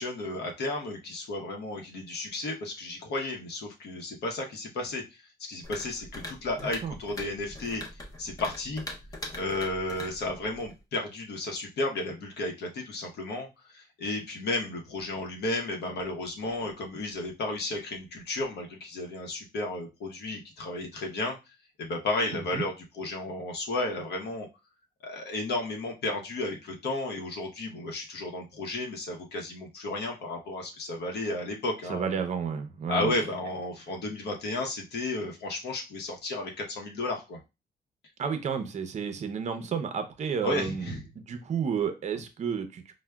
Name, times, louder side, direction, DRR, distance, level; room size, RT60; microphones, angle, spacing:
voice 1, 0.0-7.8 8.2-8.8 9.3-24.5 25.0-32.1 32.9-37.4 40.4-41.0, left 2 dB, 70° left, 1 dB, 0.8 m, -33 dB
sound 1, 5.6-10.8, left 1 dB, 20° left, 0.6 m, -43 dB
voice 2, 22.3-22.6 31.9-33.1 38.2-42.9, right 6 dB, 40° right, 7 dB, 0.5 m, -31 dB
4.8 x 2.1 x 2.2 m, 0.26 s
cardioid pair, 150°, 18 cm